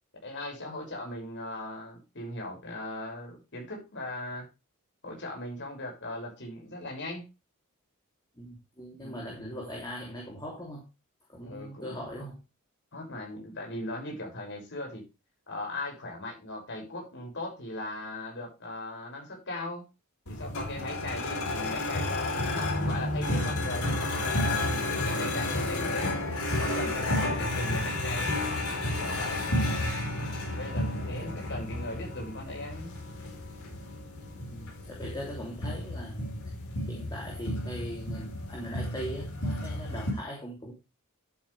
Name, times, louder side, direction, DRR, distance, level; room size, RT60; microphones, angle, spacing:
voice 1, 0.2-4.5 5.0-7.2 9.0-9.2 11.4-12.1 12.9-15.0 15.5-19.8 20.3-26.1 26.6-28.4 29.0-29.5 30.4-32.9, left 1 dB, 55° left, 0 dB, 6.4 m, -39 dB
voice 2, 8.3-10.8 11.3-12.4 31.2-31.3 34.5-36.3 36.9-40.7, equal, 20° left, -2 dB, 3.0 m, -40 dB
sound 1, 20.3-40.1, left 1 dB, 75° left, 4.8 m, -31 dB
12.5 x 8.9 x 3.4 m, 0.27 s
head